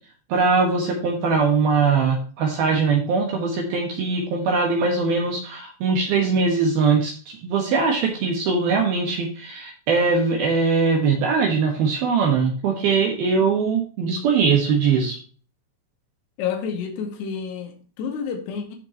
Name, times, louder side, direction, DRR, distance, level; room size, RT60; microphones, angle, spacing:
voice 1, 0.3-15.2, right 4 dB, 65° right, 2.9 m, -21 dB
voice 2, 16.4-18.8, left 7 dB, 65° left, 3.7 m, -29 dB
15.0 x 5.8 x 2.9 m
omnidirectional pair, 5.6 m